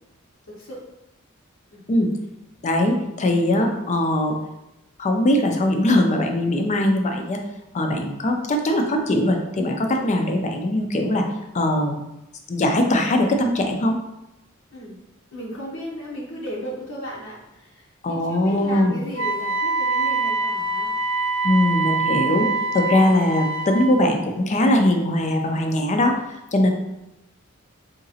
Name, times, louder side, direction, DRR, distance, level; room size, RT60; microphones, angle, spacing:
voice 1, 0.5-0.8 1.7-1.8 10.0-10.1 14.7-15.0 15.3-20.9 22.3-22.7, equal, 85° left, -5 dB, 0.8 m, -35 dB
voice 2, 2.6-4.4 5.0-7.4 7.7-11.2 11.5-12.0 12.5-14.0 18.0-19.0 21.4-22.5 22.7-26.2 26.5-26.7, left 1 dB, 35° left, 3 dB, 0.4 m, -21 dB
Wind instrument woodwind instrument, 19.1-24.0, right 3 dB, 80° right, 0.8 m, -24 dB
3.8 x 2.8 x 2.7 m, 0.92 s
head